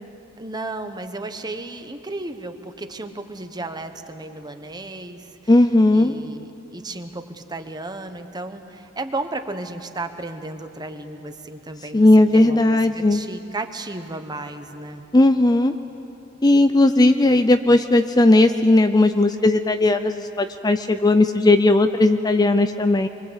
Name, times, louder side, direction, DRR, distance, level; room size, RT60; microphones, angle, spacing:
voice 1, 0.4-5.5 5.9-12.1 12.3-15.0, right 2 dB, 20° right, 7 dB, 1.2 m, -34 dB
voice 2, 5.5-6.1 11.9-13.2 15.1-15.7 16.4-23.1, left 2 dB, 20° left, 8 dB, 0.5 m, -16 dB
25.5 x 23.5 x 8.2 m, 2.8 s
head